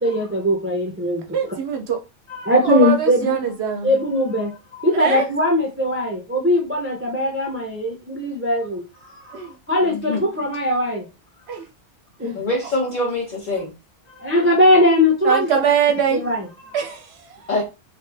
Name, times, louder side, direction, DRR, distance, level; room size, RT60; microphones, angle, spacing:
voice 1, 0.0-1.2 2.3-3.4 3.8-11.1 12.2-12.4 14.1-15.6 16.1-16.8, left 1 dB, 20° right, 0.4 m, -20 dB
voice 2, 1.3-2.0 2.6-3.9 4.9-5.3 9.3-9.5 11.5-11.6 15.2-16.2 16.7-17.6, right 7 dB, 65° right, 0.8 m, -22 dB
voice 3, 9.8-10.2 12.3-13.7 17.5-17.6, left 2 dB, 40° left, 1.0 m, -24 dB
3.2 x 2.7 x 3.3 m
omnidirectional pair, 1.2 m